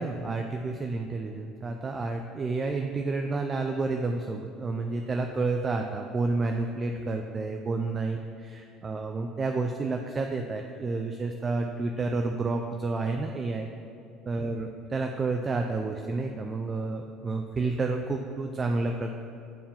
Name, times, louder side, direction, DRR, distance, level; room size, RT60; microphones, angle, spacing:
voice 1, 0.0-13.7 14.3-19.1, right 3 dB, 25° right, 3 dB, 0.4 m, -30 dB
7.4 x 4.7 x 3.6 m, 2.5 s
cardioid pair, 125°, 0 cm